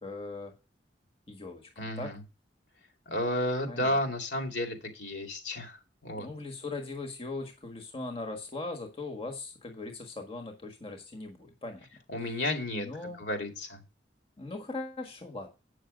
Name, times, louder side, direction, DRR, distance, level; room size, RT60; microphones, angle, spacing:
voice 1, 0.0-0.5 1.3-1.6 2.0-2.1 3.7-4.0 6.2-11.9 12.8-13.2 14.4-15.5, left 3 dB, 30° left, 4 dB, 1.5 m, -39 dB
voice 2, 1.8-2.2 3.1-5.8 6.0-6.3 12.1-13.8, left 1 dB, 65° left, 3 dB, 2.5 m, -32 dB
8.8 x 6.4 x 5.1 m, 0.28 s
head